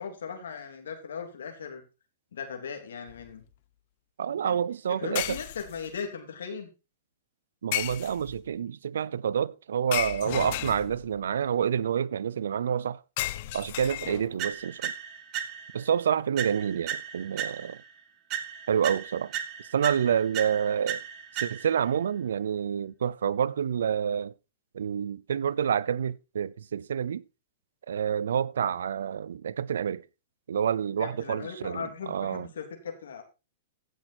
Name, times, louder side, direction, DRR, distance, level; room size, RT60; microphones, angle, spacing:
voice 1, 0.0-1.8 2.3-3.4 4.4-4.6 5.0-6.7 31.0-33.2, left 6 dB, 85° left, 3.0 m, -38 dB
sound 1, 3.1-3.3 5.2-6.0 7.7-8.5 9.9-11.2 13.2-14.5, left 16 dB, 50° left, 0.7 m, -34 dB
voice 2, 4.2-5.4 7.6-13.0 13.5-14.9 15.7-17.8 18.7-19.3 19.7-21.0 21.3-24.3 24.7-27.2 27.9-30.0 30.5-32.5, right 8 dB, 85° right, 0.5 m, -28 dB
sound 2, 14.4-15.9 16.4-17.9 18.3-21.9, right 9 dB, 35° right, 1.6 m, -36 dB
15.5 x 6.3 x 4.2 m
hypercardioid pair, 140°, 0 cm